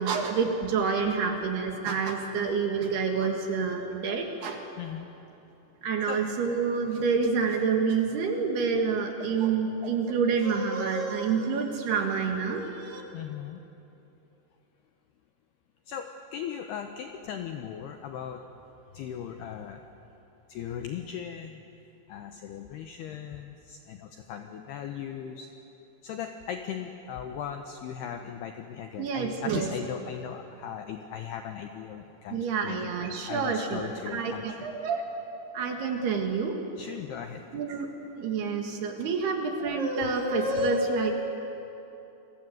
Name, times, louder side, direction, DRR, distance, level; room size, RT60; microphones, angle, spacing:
voice 1, 0.0-4.6 5.8-13.0 29.0-29.7 32.3-35.1 35.5-36.6 37.5-37.9 38.2-41.1, right 5 dB, 60° right, 3 dB, 3.3 m, -28 dB
voice 2, 4.8-5.1 6.1-6.2 13.1-13.6 15.9-18.4 18.9-19.8 20.5-21.6 22.1-25.5 26.0-32.8 33.3-34.6 36.8-37.6, left 8 dB, 75° left, 5 dB, 2.4 m, -38 dB
29.5 x 23.0 x 7.9 m, 3.0 s
omnidirectional pair, 5.9 m